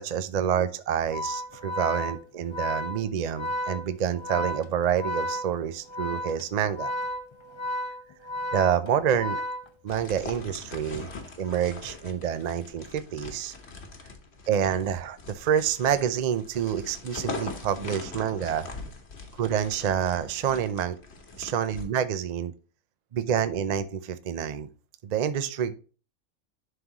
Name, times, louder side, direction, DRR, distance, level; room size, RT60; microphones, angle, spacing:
voice 1, 0.0-6.9 8.5-9.4 9.8-11.1 11.4-13.5 14.5-18.7 19.4-21.0 21.4-22.5 23.1-24.7 25.0-25.7, right 8 dB, 75° right, 11 dB, 0.3 m, -27 dB
Organ, 1.0-10.2, left 1 dB, 35° left, 0.5 m, -33 dB
sound 1, 9.9-21.8, left 3 dB, 50° left, 1.3 m, -41 dB
11.0 x 3.8 x 2.9 m, 0.37 s
omnidirectional pair, 1.5 m